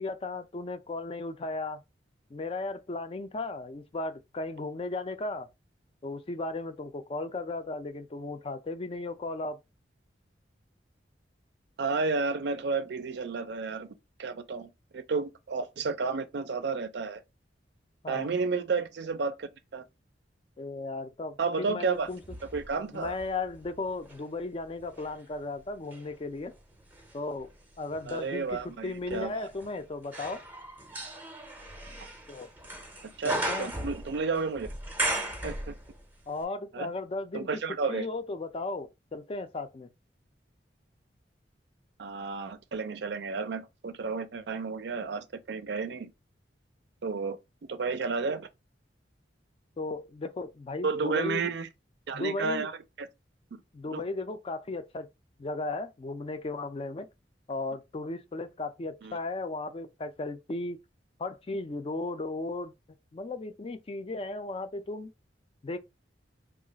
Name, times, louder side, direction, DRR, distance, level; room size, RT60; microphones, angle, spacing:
voice 1, 0.0-1.8 2.3-5.5 6.0-9.6 18.0-18.3 20.6-22.2 22.9-26.5 27.1-27.5 27.8-30.4 32.3-32.5 33.2-33.7 36.3-37.5 37.9-39.9 49.8-51.5 52.1-52.7 53.7-55.1 55.4-57.1 57.5-60.8 61.2-62.7 63.1-65.1 65.6-65.8, left 2 dB, 30° left, 0.4 m, -35 dB
voice 2, 11.8-17.2 18.1-19.8 21.4-22.1 22.5-23.2 28.1-29.5 33.0-34.7 35.4-35.8 36.7-36.9 37.3-38.1 42.0-46.1 47.0-47.4 47.7-48.5 50.8-51.7 52.1-53.1 53.5-53.6 53.9-54.0 59.0-59.2, right 4 dB, 65° right, 0.4 m, -32 dB
sound 1, 22.1-24.3 24.8-36.1 36.4-36.5, right 1 dB, 10° right, 0.6 m, -38 dB
3.0 x 2.4 x 3.9 m
head